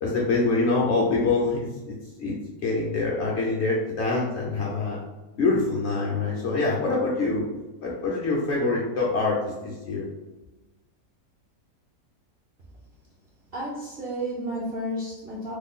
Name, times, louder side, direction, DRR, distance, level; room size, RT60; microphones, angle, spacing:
voice 1, 0.0-1.6 1.9-5.0 5.4-7.4 7.8-10.0, left 3 dB, 65° left, -4 dB, 0.7 m, -25 dB
voice 2, 13.5-15.5, equal, 60° right, -4 dB, 0.6 m, -32 dB
3.1 x 2.2 x 3.6 m, 1.1 s
omnidirectional pair, 1.6 m